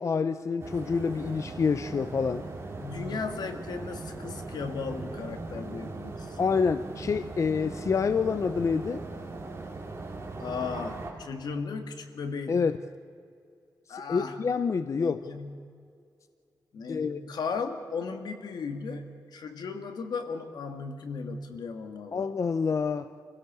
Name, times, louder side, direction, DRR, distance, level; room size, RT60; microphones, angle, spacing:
voice 1, 0.0-2.4 6.4-9.0 12.5-12.8 13.9-15.2 16.9-17.2 22.1-23.1, left 5 dB, 45° left, 11 dB, 0.6 m, -27 dB
sound 1, 0.6-11.1, right 3 dB, 40° right, 3.2 m, -39 dB
voice 2, 2.7-6.4 10.4-12.6 13.9-14.4 14.9-15.6 16.7-22.3, left 5 dB, 85° left, 6 dB, 1.9 m, -36 dB
26.5 x 16.5 x 6.9 m, 2.3 s
wide cardioid pair, 140°, 7 cm